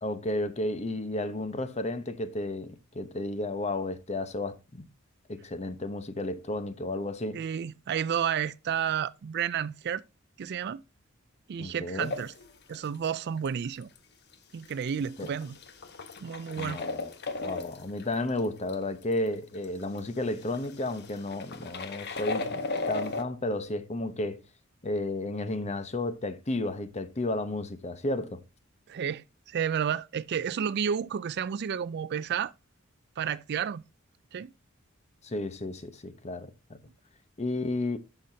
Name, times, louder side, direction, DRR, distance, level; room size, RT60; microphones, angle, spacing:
voice 1, 0.0-4.9 5.3-7.4 11.6-12.2 15.2-15.3 16.6-17.1 17.4-24.4 24.8-28.4 35.2-36.8 37.4-38.0, left 2 dB, 35° left, 0.9 m, -32 dB
voice 2, 7.3-10.0 10.4-10.8 11.5-12.3 12.7-13.9 14.5-15.6 16.2-16.8 28.9-32.5 33.2-33.8 34.3-34.5, right 8 dB, 55° right, 0.4 m, -31 dB
sound 1, 12.0-12.8 13.4-14.0 14.3-14.4 14.6-18.0 18.4-18.7 19.1-19.2 19.5-20.0 20.4-23.2, left 3 dB, 55° left, 1.1 m, -36 dB
11.0 x 5.9 x 2.7 m
head